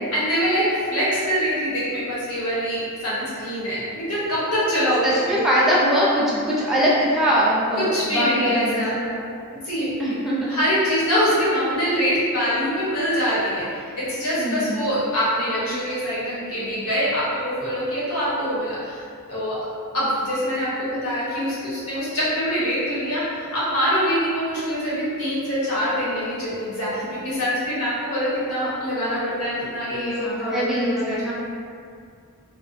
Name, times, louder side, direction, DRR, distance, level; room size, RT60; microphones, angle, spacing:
voice 1, 0.1-5.4 7.8-8.9 9.6-9.9 10.5-19.0 19.3-19.6 19.9-30.7 30.9-31.3, equal, 75° left, -9 dB, 0.9 m, -24 dB
voice 2, 5.0-9.2 10.0-10.5 14.4-14.8 29.9-31.3, equal, ahead, -8 dB, 0.4 m, -22 dB
2.5 x 2.1 x 2.5 m, 2.3 s
head